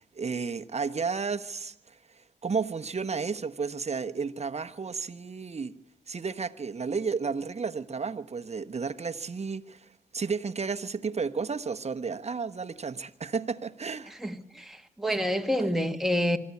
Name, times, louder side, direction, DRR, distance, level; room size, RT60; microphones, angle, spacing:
voice 1, 0.0-5.8 6.1-14.1, right 5 dB, 35° right, 1.2 m, -32 dB
voice 2, 14.2-16.4, equal, ahead, 1.8 m, -28 dB
24.5 x 12.5 x 8.5 m
supercardioid pair, 55°, 19 cm